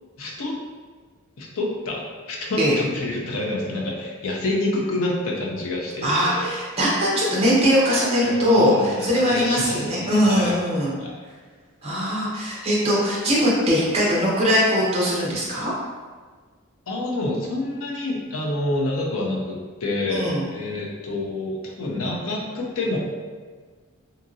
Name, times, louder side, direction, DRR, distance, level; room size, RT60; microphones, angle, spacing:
voice 1, 0.2-0.6 1.4-6.5 8.2-10.6 11.0-11.1 16.9-23.0, left 2 dB, 70° left, -2 dB, 0.6 m, -27 dB
voice 2, 6.0-10.9 11.8-15.7 20.1-20.4, equal, 25° right, -5 dB, 0.7 m, -21 dB
2.8 x 2.7 x 2.5 m, 1.5 s
head